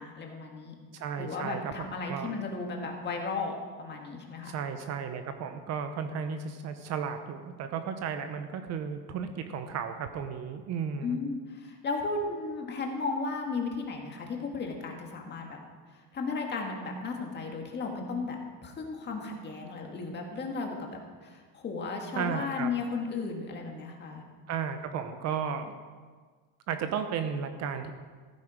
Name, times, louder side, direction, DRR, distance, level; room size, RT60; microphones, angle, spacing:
voice 1, 0.0-0.8 1.2-4.6 11.0-15.6 15.9-24.2, left 4 dB, 25° left, 2 dB, 1.8 m, -35 dB
voice 2, 0.9-2.4 4.4-11.2 22.1-22.7 24.5-25.7 26.7-27.9, right 7 dB, 40° right, 8 dB, 0.8 m, -34 dB
15.0 x 9.3 x 5.0 m, 1.5 s
cardioid pair, 160°, 41 cm